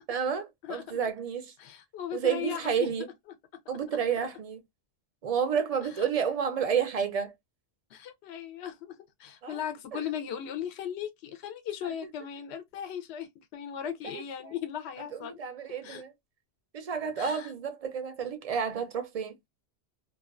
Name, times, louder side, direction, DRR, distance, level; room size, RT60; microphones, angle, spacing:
voice 1, 0.1-1.5 2.1-3.1 3.7-4.6 5.2-7.3 9.4-9.6 9.9-10.0 14.0-14.5 15.1-16.1 16.7-19.3, right 7 dB, 60° right, 0.4 m, -30 dB
voice 2, 0.6-1.0 1.6-2.9 5.8-6.1 7.9-15.4 15.8-16.0 17.2-17.5, left 9 dB, 75° left, 0.9 m, -37 dB
2.4 x 2.3 x 2.3 m
omnidirectional pair, 1.2 m